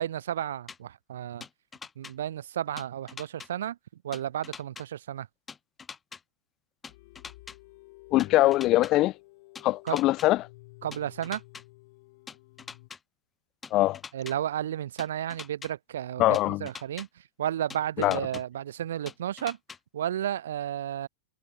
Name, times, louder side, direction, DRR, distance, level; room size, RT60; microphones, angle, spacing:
voice 1, 0.0-1.4 2.0-3.8 4.0-5.3 9.8-10.0 10.8-11.4 14.1-17.1 17.4-19.6 19.9-21.1, right 11 dB, 85° right, 1.4 m, -32 dB
sound 1, 0.7-0.8 1.4-2.1 2.8-3.5 4.1-4.8 5.5-6.2 6.8-7.6 8.2-8.9 9.5-10.3 10.9-11.6 12.3-13.0 13.6-14.3 15.0-15.7 16.3-17.1 17.7-18.4 19.1-19.8, left 5 dB, 10° left, 2.3 m, -43 dB
sound 2, 6.9-12.9, left 23 dB, 40° left, 3.0 m, -52 dB
voice 2, 8.1-9.1 9.6-10.5 13.7-14.0 16.2-16.7 18.0-18.2, left 17 dB, 25° left, 0.5 m, -22 dB
supercardioid pair, 175°, 0 cm